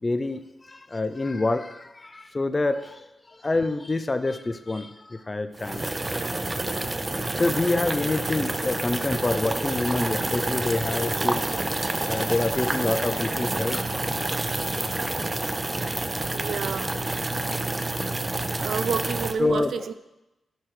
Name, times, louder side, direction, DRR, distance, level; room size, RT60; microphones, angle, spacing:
voice 1, 0.0-5.8 7.3-11.5 12.0-13.9 19.4-19.8, left 2 dB, 20° left, 11 dB, 0.5 m, -27 dB
sound 1, 5.5-19.3, right 2 dB, 20° right, 0.6 m, -28 dB
voice 2, 16.3-16.9 18.6-19.9, right 6 dB, 65° right, 12 dB, 0.5 m, -29 dB
12.0 x 10.5 x 3.2 m, 0.97 s
wide cardioid pair, 150°, 0 cm